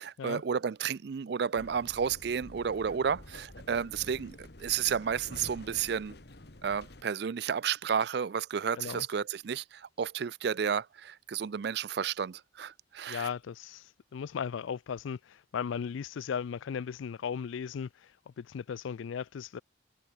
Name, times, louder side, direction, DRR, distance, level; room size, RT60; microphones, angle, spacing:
voice 1, 0.0-6.2 6.6-13.3, right 7 dB, 55° right, 0.4 m, -32 dB
sound 1, 1.5-7.0, left 1 dB, 55° left, 1.8 m, -49 dB
voice 2, 13.1-19.6, left 7 dB, 80° left, 0.4 m, -37 dB
head